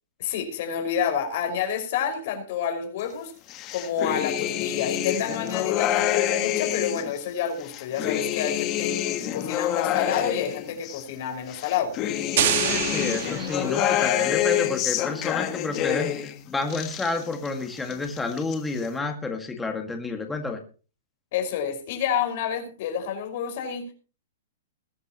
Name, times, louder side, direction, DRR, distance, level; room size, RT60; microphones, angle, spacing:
voice 1, 0.2-3.3 3.7-11.9 21.3-23.9, left 8 dB, 45° left, 5 dB, 5.3 m, -29 dB
sound 1, 3.5-7.1 7.6-11.0 11.5-16.3 16.6-17.5 17.8-18.5, left 12 dB, 25° left, 1.4 m, -27 dB
sound 2, 12.4-14.2, right 11 dB, 55° right, 1.6 m, -27 dB
voice 2, 12.7-20.6, left 3 dB, 5° left, 4 dB, 1.8 m, -30 dB
20.5 x 11.5 x 3.0 m, 0.36 s
hypercardioid pair, 160°, 0 cm